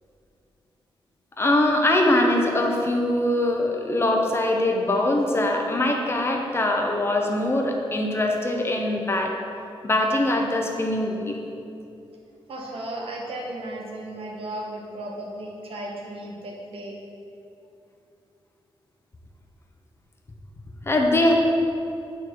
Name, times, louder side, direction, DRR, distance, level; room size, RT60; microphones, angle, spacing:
voice 1, 1.4-9.3 9.8-11.4 20.8-21.3, left 1 dB, 25° left, 1 dB, 0.8 m, -22 dB
voice 2, 12.5-17.0, right 1 dB, 85° right, -1 dB, 1.1 m, -35 dB
8.7 x 3.8 x 4.6 m, 2.7 s
wide cardioid pair, 125°, 9 cm